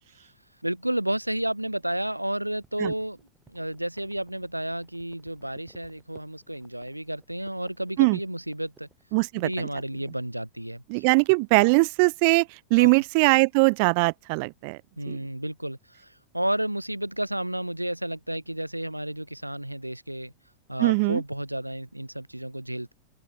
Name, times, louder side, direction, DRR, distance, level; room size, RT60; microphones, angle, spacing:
voice 1, 0.6-3.2 3.5-8.9 9.3-11.0 12.8-13.0 15.0-20.3 20.7-22.9, right 1 dB, 85° right, 0.4 m, -31 dB
sound 1, 2.5-9.9, right 4 dB, 10° right, 7.7 m, -59 dB
voice 2, 9.1-9.7 10.9-14.8 15.1-15.2 20.8-21.2, right 34 dB, 45° right, 1.0 m, -21 dB
open air
figure-of-eight pair, 90°, 0 cm